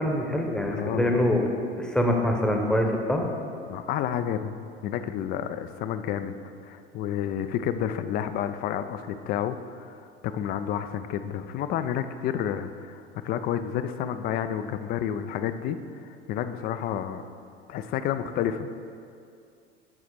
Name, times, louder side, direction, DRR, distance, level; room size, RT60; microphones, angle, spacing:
voice 1, 0.0-1.5 1.8-3.2, left 1 dB, ahead, 2 dB, 0.9 m, -24 dB
voice 2, 0.7-1.1 3.7-6.4 6.6-17.2 17.7-18.7, left 9 dB, 30° left, 10 dB, 0.4 m, -30 dB
7.5 x 5.8 x 4.7 m, 2.4 s
figure-of-eight pair, 75°, 31 cm